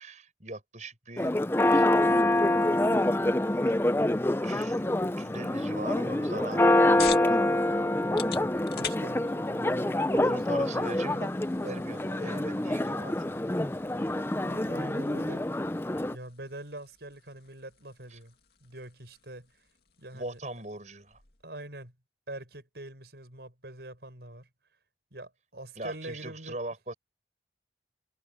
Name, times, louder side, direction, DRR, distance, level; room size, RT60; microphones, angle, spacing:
voice 1, 0.0-1.3 1.7-1.9 3.6-3.7 4.4-7.6 10.1-13.5 18.1-18.2 20.1-21.2 25.8-26.9, right 2 dB, 40° right, 5.9 m, -41 dB
Church bell, 1.2-16.1, left 1 dB, 15° left, 0.5 m, -26 dB
sound 1, 6.4-21.5, left 9 dB, 60° left, 2.3 m, -45 dB
voice 2, 8.8-10.1 14.4-15.5 16.1-18.3 18.6-19.6 20.0-20.4 21.4-21.9 22.3-24.5 25.1-26.6, right 1 dB, 70° right, 5.6 m, -44 dB
head